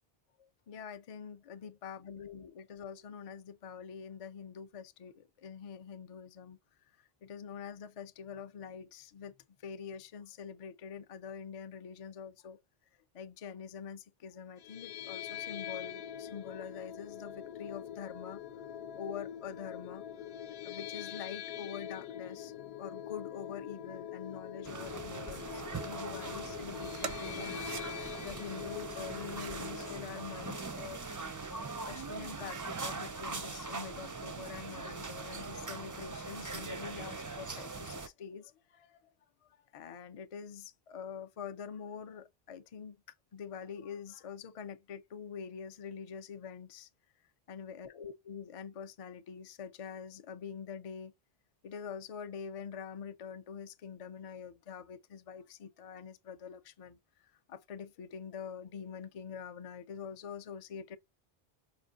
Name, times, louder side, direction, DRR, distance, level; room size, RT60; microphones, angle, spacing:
voice 1, 0.4-6.6 7.0-9.3 9.6-12.6 13.1-18.4 19.0-20.0 20.6-27.6 28.2-31.1 31.9-39.1 39.7-43.0 43.3-46.9 47.5-51.1 51.6-57.0 57.2-61.0, left 7 dB, 55° left, 0.4 m, -45 dB
sound 1, 14.6-30.7, left 10 dB, 75° left, 0.8 m, -44 dB
sound 2, 24.6-38.1, right 4 dB, 30° right, 0.3 m, -41 dB
sound 3, 27.0-27.9 29.0-29.6 30.5-31.3 31.7-31.8 32.2-32.9, right 7 dB, 85° right, 1.0 m, -46 dB
4.9 x 2.5 x 2.4 m
omnidirectional pair, 1.1 m